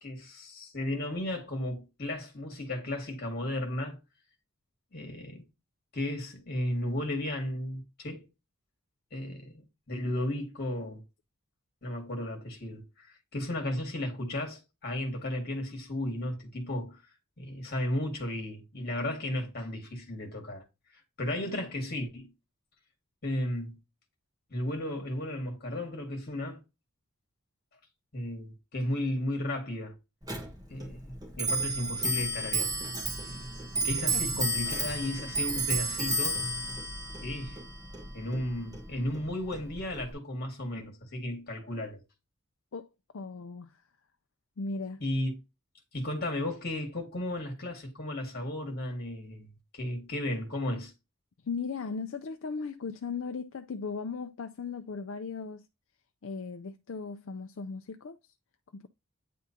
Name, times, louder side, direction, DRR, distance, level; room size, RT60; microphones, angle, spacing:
voice 1, 0.0-4.0 4.9-5.4 5.9-8.3 9.1-9.6 9.9-11.0 11.8-17.1 17.4-20.6 20.9-22.3 23.2-23.8 24.5-26.6 28.1-30.0 30.7-32.7 33.3-33.5 33.8-36.4 37.2-37.6 38.1-42.0 45.0-45.4 45.9-50.9, left 1 dB, 50° left, 2.0 m, -34 dB
Clock, 30.2-40.1, right 2 dB, 15° right, 1.2 m, -33 dB
voice 2, 43.1-43.7 44.6-45.0 51.4-55.7 56.2-58.2 58.7-58.9, left 4 dB, 65° left, 0.5 m, -37 dB
9.3 x 3.7 x 2.8 m
head